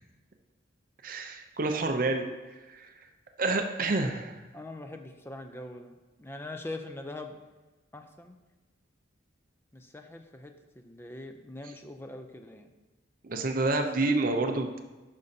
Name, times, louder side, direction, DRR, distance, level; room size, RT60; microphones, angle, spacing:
voice 1, 1.0-2.9 3.4-4.4 13.2-14.8, right 2 dB, 45° right, 5 dB, 0.5 m, -29 dB
voice 2, 4.5-7.4 7.9-8.4 9.7-12.7 13.8-13.9, left 2 dB, 10° left, 6 dB, 0.4 m, -43 dB
11.0 x 5.2 x 2.7 m, 1.2 s
head